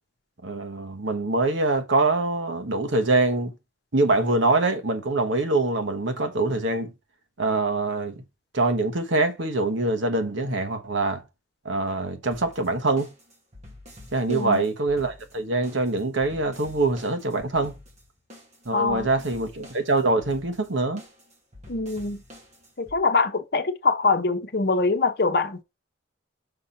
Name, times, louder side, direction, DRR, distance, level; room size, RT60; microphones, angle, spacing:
voice 1, 0.4-3.5 3.9-6.9 7.4-8.2 8.5-11.2 11.6-13.1 14.1-17.8 18.6-21.0, right 2 dB, 75° right, 1.2 m, -24 dB
sound 1, 12.3-23.0, left 1 dB, 35° right, 2.1 m, -48 dB
voice 2, 14.3-14.6 18.7-19.1 21.7-22.2 22.8-25.6, left 3 dB, 55° left, 0.9 m, -24 dB
5.9 x 4.2 x 5.7 m
head